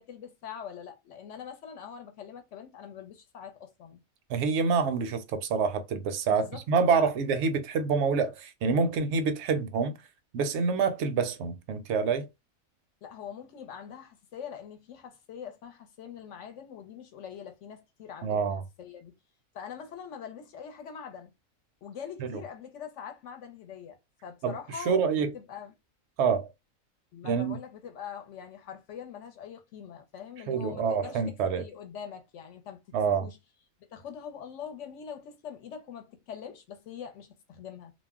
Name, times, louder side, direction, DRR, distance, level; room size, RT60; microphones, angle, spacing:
voice 1, 0.0-4.0 6.3-6.6 6.9-7.1 13.0-19.1 19.5-21.3 21.8-24.0 24.2-25.7 27.1-31.2 31.6-32.8 33.1-33.4 33.9-37.9, left 8 dB, 70° left, 0.9 m, -43 dB
voice 2, 4.3-9.9 10.3-12.3 18.2-18.6 22.2-22.4 24.4-24.6 24.9-25.3 26.2-26.5 27.2-27.6 30.5-31.6 32.9-33.3, right 5 dB, 65° right, 0.7 m, -27 dB
2.4 x 2.0 x 3.4 m
omnidirectional pair, 1.4 m